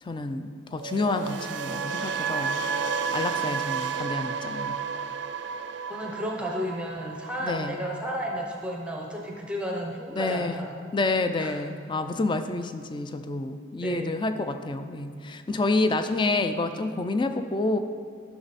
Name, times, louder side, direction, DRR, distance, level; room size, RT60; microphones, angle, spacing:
voice 1, 0.0-2.6 3.1-4.8 7.4-7.8 10.1-10.7 10.9-17.8, left 2 dB, 25° left, 9 dB, 0.4 m, -28 dB
sound 1, 0.8-8.9 9.2-9.5, right 6 dB, 60° right, 0.4 m, -32 dB
voice 2, 5.9-10.8 11.4-11.6 13.8-14.1, equal, 5° right, 0 dB, 0.7 m, -33 dB
12.0 x 6.0 x 4.1 m, 2.3 s
head